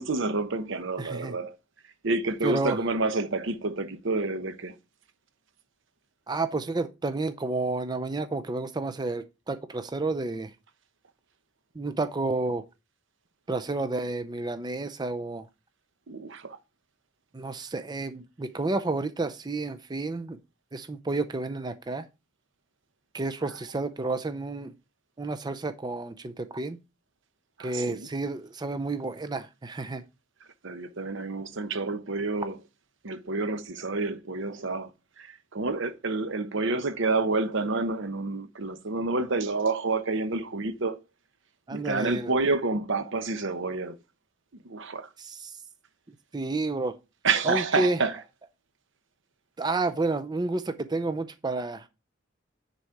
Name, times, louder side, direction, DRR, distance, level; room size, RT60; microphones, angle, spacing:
voice 1, 0.0-1.5 2.0-4.7 16.1-16.6 27.6-28.1 30.6-32.6 33.0-34.9 35.2-41.0 41.7-44.0 44.6-45.1 47.2-48.2, right 3 dB, 70° right, 0.9 m, -29 dB
voice 2, 1.0-1.3 2.4-2.8 6.3-10.5 11.8-12.6 13.5-15.5 17.3-20.4 20.7-22.1 23.1-24.7 25.2-26.8 27.6-30.0 41.7-42.4 45.2-45.5 46.3-46.9 47.4-48.0 49.6-51.9, right 2 dB, 20° right, 0.5 m, -30 dB
9.9 x 4.1 x 4.7 m
head